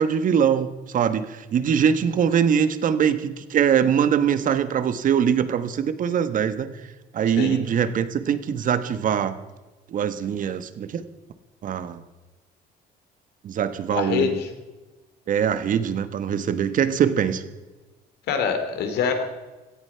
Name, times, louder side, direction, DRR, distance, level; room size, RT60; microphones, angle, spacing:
voice 1, 0.0-6.7 7.1-9.3 9.9-11.0 11.6-12.0 13.4-14.4 15.3-17.4, right 8 dB, 50° right, 12 dB, 1.3 m, -22 dB
voice 2, 13.9-14.5 18.3-19.2, left 6 dB, 75° left, 6 dB, 2.8 m, -24 dB
17.0 x 13.5 x 5.7 m, 1.2 s
cardioid pair, 110°, 17 cm